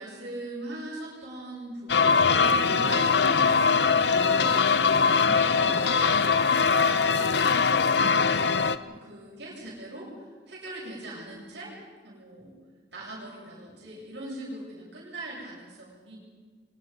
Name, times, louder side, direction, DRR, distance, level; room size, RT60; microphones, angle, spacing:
voice 1, 0.0-4.9 5.1-10.1 10.5-11.7 12.0-12.5 12.9-16.2, right 1 dB, 70° right, -4 dB, 7.7 m, -41 dB
sound 1, 1.9-8.8, left 5 dB, 70° left, 1.0 m, -22 dB
29.5 x 24.5 x 5.5 m, 1.5 s
head